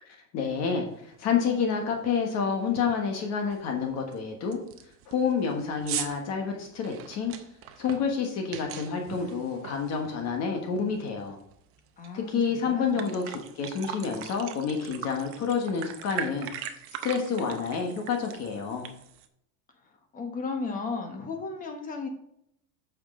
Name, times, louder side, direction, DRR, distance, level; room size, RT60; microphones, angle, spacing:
voice 1, 0.1-4.6 5.1-7.3 7.8-11.4 12.1-16.5 17.0-18.9, left 6 dB, 35° left, 3 dB, 1.4 m, -29 dB
sound 1, 1.1-1.2 1.7-2.0 2.3-2.4 2.8-3.1 3.5-3.6 4.1-4.2 4.5-10.5 10.8-12.1 12.5-12.6 12.8-19.3, right 9 dB, 30° right, 0.7 m, -40 dB
voice 2, 12.0-13.1 19.8-22.1, left 4 dB, 20° left, 4 dB, 1.2 m, -35 dB
8.6 x 6.5 x 3.7 m, 0.74 s
supercardioid pair, 160°, 46 cm